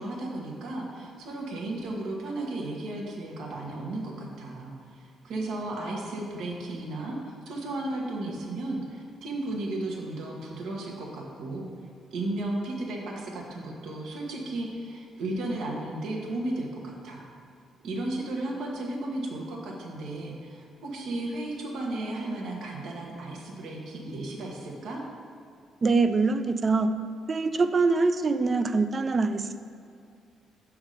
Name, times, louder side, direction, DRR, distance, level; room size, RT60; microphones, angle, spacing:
voice 1, 0.0-11.7 12.1-17.3 17.8-25.0, right 2 dB, 75° right, -1 dB, 1.0 m, -34 dB
voice 2, 25.8-27.0 27.3-29.6, right 3 dB, 35° right, 10 dB, 0.3 m, -24 dB
6.5 x 3.6 x 4.9 m, 2.4 s
cardioid pair, 90°, 0 cm